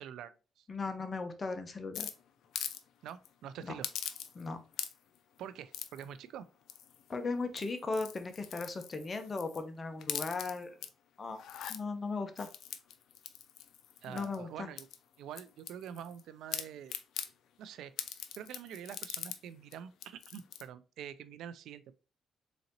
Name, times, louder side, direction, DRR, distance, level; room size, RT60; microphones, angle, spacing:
voice 1, 0.0-0.7 3.0-3.9 5.4-6.5 14.0-14.9 15.2-16.9 17.6-21.9, right 9 dB, 80° right, 0.4 m, -46 dB
voice 2, 0.7-2.1 3.6-3.7 4.3-4.6 7.1-10.8 11.2-11.4 11.7-12.5 14.1-14.7, left 3 dB, 35° left, 0.9 m, -37 dB
sound 1, 1.9-2.8 3.1-3.3 3.8-4.5 4.7-5.2 5.7-6.0 6.7-7.1 7.5-9.6 10.0-10.9 11.3-11.8 12.4-14.4 14.8-16.2 16.5-17.3 18.0-19.4 19.7-19.8 20.0-20.6, left 9 dB, 75° left, 0.5 m, -42 dB
4.1 x 3.8 x 2.9 m
cardioid pair, 90°, 0 cm